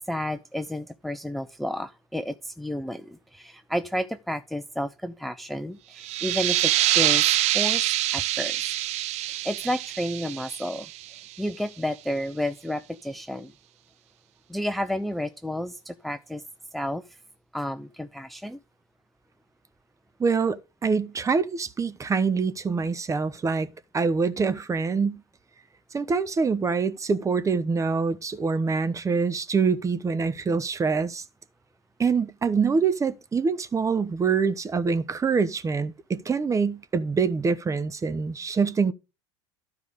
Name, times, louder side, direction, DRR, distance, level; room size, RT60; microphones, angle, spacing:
voice 1, 0.1-8.7 9.3-13.5 14.5-16.4 16.7-17.2 17.5-18.6, equal, ahead, 0.6 m, -31 dB
sound 1, 6.0-11.4, right 15 dB, 50° right, 0.6 m, -25 dB
voice 2, 20.2-25.2 25.9-31.2 32.0-38.9, right 5 dB, 20° right, 0.9 m, -25 dB
12.0 x 4.8 x 5.2 m
hypercardioid pair, 85°, 15 cm